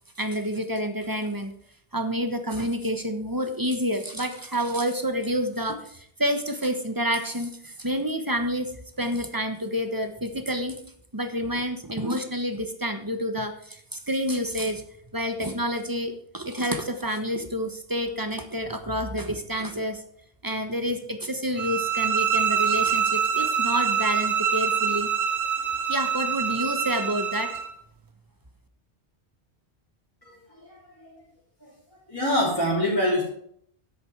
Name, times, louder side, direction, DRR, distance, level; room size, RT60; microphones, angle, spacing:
voice 1, 0.2-1.5 1.9-8.7 9.0-10.8 11.1-14.8 15.1-20.0 20.4-25.1 25.9-27.5, equal, 20° right, 7 dB, 1.2 m, -28 dB
sound 1, 21.6-27.7, right 7 dB, 80° right, 1.4 m, -25 dB
voice 2, 30.6-31.2 31.6-31.7 32.1-33.2, left 1 dB, 20° left, -7 dB, 3.2 m, -25 dB
10.5 x 8.0 x 4.7 m, 0.65 s
omnidirectional pair, 1.1 m